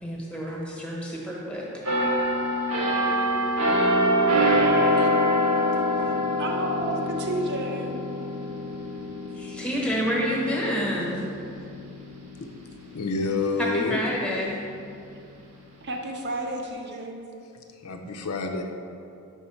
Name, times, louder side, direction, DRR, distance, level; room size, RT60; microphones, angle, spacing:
voice 1, 0.0-1.7 9.3-11.2 13.6-14.6, equal, 5° left, -4 dB, 1.0 m, -28 dB
sound 1, 1.9-13.4 13.8-14.1, equal, 80° right, 1.0 m, -25 dB
voice 2, 6.4-8.0 15.8-17.2, right 2 dB, 50° right, 2 dB, 0.6 m, -31 dB
voice 3, 12.9-14.0 17.8-18.6, left 3 dB, 80° left, 3 dB, 0.5 m, -28 dB
4.6 x 4.3 x 5.7 m, 2.6 s
head